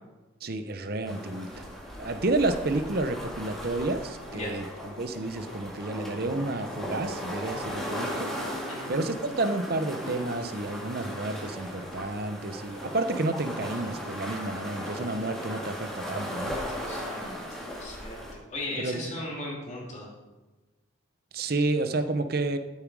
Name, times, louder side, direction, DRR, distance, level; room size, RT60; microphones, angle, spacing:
voice 1, 0.4-1.7 2.0-8.3 8.9-16.6 18.8-19.0 21.3-22.6, right 2 dB, 50° right, 9 dB, 0.8 m, -30 dB
sound 1, 1.0-18.3, equal, ahead, 2.1 m, -37 dB
voice 2, 16.2-18.2 18.5-20.1, left 1 dB, 35° left, -2 dB, 2.5 m, -38 dB
13.0 x 7.3 x 4.8 m, 1.1 s
head